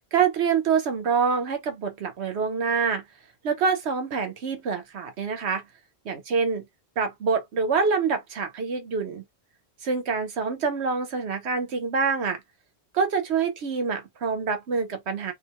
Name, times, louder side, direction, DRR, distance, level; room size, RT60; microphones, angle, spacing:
voice 1, 0.1-3.0 3.4-5.6 6.0-6.6 7.0-9.2 9.8-12.4 12.9-15.3, right 5 dB, 90° right, 1.1 m, -26 dB
2.7 x 2.1 x 2.9 m
omnidirectional pair, 1.1 m